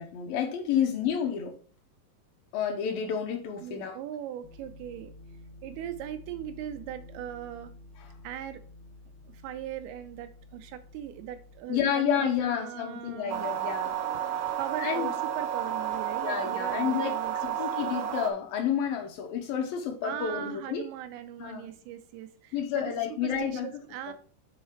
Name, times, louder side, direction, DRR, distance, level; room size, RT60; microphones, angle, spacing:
voice 1, 0.0-1.6 2.5-4.0 11.7-14.0 14.8-15.1 16.2-17.2 17.6-20.9 21.4-21.7 22.5-23.7 24.1-24.2, left 8 dB, 70° left, 2.4 m, -30 dB
voice 2, 3.6-5.1 5.6-7.7 8.2-8.6 9.2-13.4 14.6-17.6 20.0-24.1, right 11 dB, 90° right, 2.7 m, -39 dB
sound 1, 4.4-11.6, left 2 dB, 85° left, 3.1 m, -50 dB
sound 2, 13.3-18.3, right 10 dB, 75° right, 1.9 m, -31 dB
7.5 x 4.0 x 4.4 m
omnidirectional pair, 4.6 m